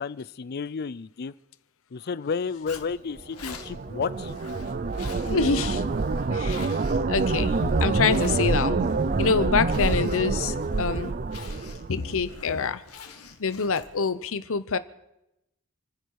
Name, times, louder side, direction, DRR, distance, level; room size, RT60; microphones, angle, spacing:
voice 1, 0.0-1.3 1.9-4.3, left 5 dB, 45° left, 18 dB, 0.5 m, -32 dB
Zipper (clothing), 2.7-14.1, left 5 dB, 80° left, 1.9 m, -46 dB
sound 1, 3.2-12.4, right 3 dB, 40° right, 0.5 m, -27 dB
voice 2, 5.2-5.9 6.3-6.8 7.1-11.1 11.9-12.8 13.4-14.8, left 5 dB, 65° left, 14 dB, 0.9 m, -26 dB
29.0 x 10.0 x 4.8 m, 0.88 s
head